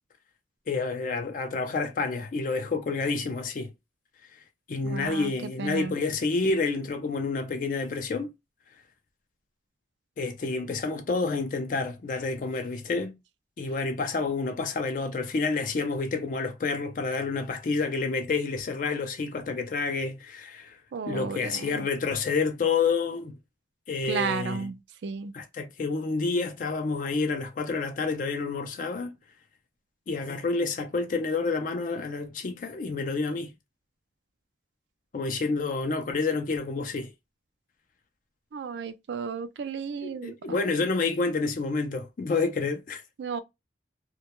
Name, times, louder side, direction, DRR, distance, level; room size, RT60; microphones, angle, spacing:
voice 1, 0.7-3.7 4.7-8.3 10.2-13.1 13.6-20.8 21.1-23.4 23.9-24.7 25.3-29.1 30.1-33.5 35.1-37.1 40.0-43.0, left 4 dB, 50° left, 0.4 m, -29 dB
voice 2, 4.8-5.3 5.6-6.0 20.9-21.9 24.1-24.8 25.0-25.3 38.5-40.6 43.2-43.4, right 5 dB, 80° right, 0.3 m, -33 dB
2.2 x 2.1 x 2.9 m
head